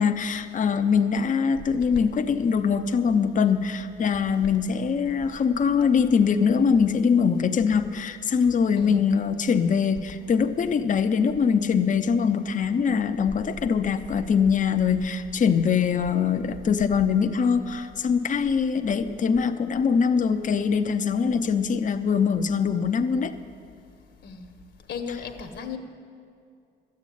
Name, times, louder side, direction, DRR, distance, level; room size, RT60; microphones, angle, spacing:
voice 1, 0.0-23.3, left 6 dB, 40° left, 7 dB, 0.7 m, -23 dB
voice 2, 8.8-9.1 24.2-24.5 24.9-25.8, left 6 dB, 65° left, 5 dB, 1.3 m, -35 dB
12.5 x 8.6 x 9.2 m, 2.4 s
cardioid pair, 90°, 20 cm